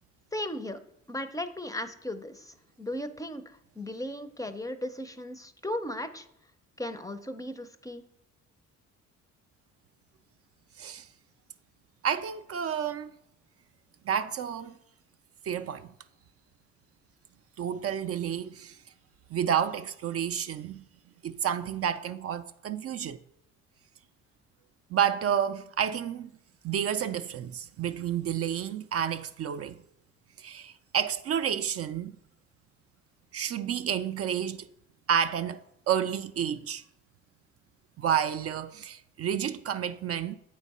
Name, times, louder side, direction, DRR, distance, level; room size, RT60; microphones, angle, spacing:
voice 1, 0.3-0.8 1.1-6.3 6.8-8.0, left 1 dB, 10° left, 0.5 m, -36 dB
voice 2, 10.8-11.1 12.0-13.1 14.0-14.7 15.4-15.9 17.6-18.8 19.3-20.8 21.2-23.2 24.9-26.3 26.6-29.8 30.4-32.2 33.3-34.7 35.1-35.6 35.9-36.8 38.0-40.4, right 9 dB, 50° right, 0.4 m, -30 dB
8.2 x 4.5 x 4.1 m
cardioid pair, 90°, 30 cm